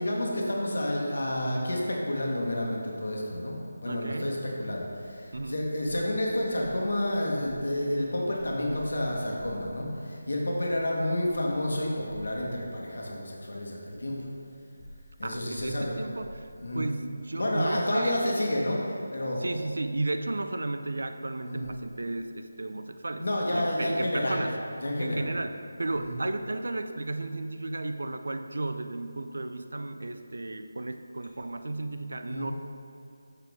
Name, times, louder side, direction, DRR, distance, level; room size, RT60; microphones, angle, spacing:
voice 1, 0.0-14.2 15.2-15.9 16.6-16.9 17.3-19.4 21.4-21.8 23.2-24.4 24.8-25.3 26.0-26.2 32.2-32.5, left 1 dB, 70° left, -2 dB, 1.4 m, -30 dB
voice 2, 3.9-4.4 5.3-5.6 15.2-16.5 16.7-18.2 19.4-23.3 23.5-24.6 25.0-32.5, right 2 dB, 70° right, 8 dB, 0.4 m, -34 dB
6.5 x 6.2 x 3.6 m, 2.5 s
figure-of-eight pair, 180°, 0 cm